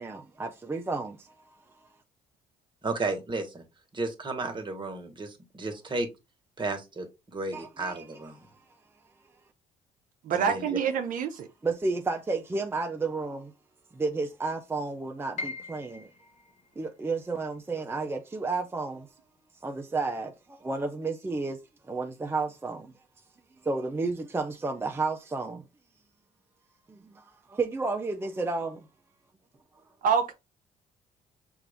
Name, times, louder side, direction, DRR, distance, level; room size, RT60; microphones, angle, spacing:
voice 1, 0.0-1.9 7.5-8.1 8.4-8.8 11.6-13.5 13.9-16.1 16.8-19.1 19.6-22.9 23.6-25.7 26.9-28.9 29.7-29.9, right 3 dB, 15° right, 0.5 m, -32 dB
voice 2, 2.8-3.6 3.9-6.1 6.6-7.1 7.3-8.4 10.3-10.8, right 3 dB, 30° right, 1.4 m, -33 dB
voice 3, 10.2-11.5 30.0-30.3, right 7 dB, 65° right, 0.6 m, -26 dB
Piano, 15.4-21.3 21.6-22.8 23.2-23.3 24.0-24.3, left 3 dB, 50° left, 0.9 m, -45 dB
5.8 x 2.5 x 3.5 m
cardioid pair, 85°, 15 cm